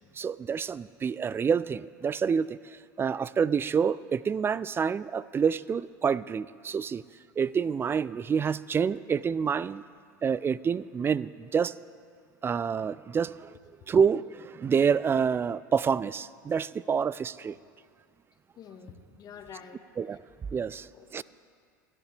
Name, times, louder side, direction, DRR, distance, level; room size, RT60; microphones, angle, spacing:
voice 1, 0.2-7.0 7.4-9.8 10.2-11.7 12.4-13.6 13.9-17.6 20.0-20.2 20.5-21.2, right 6 dB, 20° right, 19 dB, 0.4 m, -28 dB
voice 2, 18.6-19.8 20.9-21.2, left 7 dB, 40° left, 6 dB, 1.5 m, -47 dB
29.5 x 10.5 x 3.4 m, 2.1 s
hypercardioid pair, 80°, 10 cm